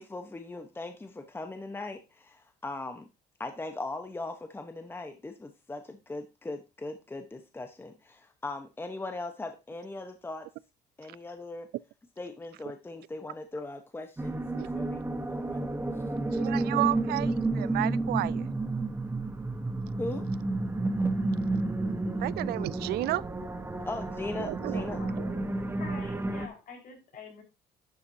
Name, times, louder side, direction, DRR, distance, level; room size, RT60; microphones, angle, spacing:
voice 1, 0.0-3.1 3.4-10.5 11.0-11.7 12.2-15.7 20.0-20.3 23.8-25.0, left 2 dB, 15° left, 1.0 m, -39 dB
sound 1, 14.2-26.5, right 2 dB, 10° right, 1.2 m, -31 dB
voice 2, 16.3-18.4 22.2-23.2 24.4-24.9 25.2-25.3, right 17 dB, 70° right, 0.4 m, -32 dB
voice 3, 24.7-25.1 25.8-27.4, left 5 dB, 55° left, 4.9 m, -46 dB
11.0 x 7.0 x 2.8 m
cardioid pair, 110°, 17 cm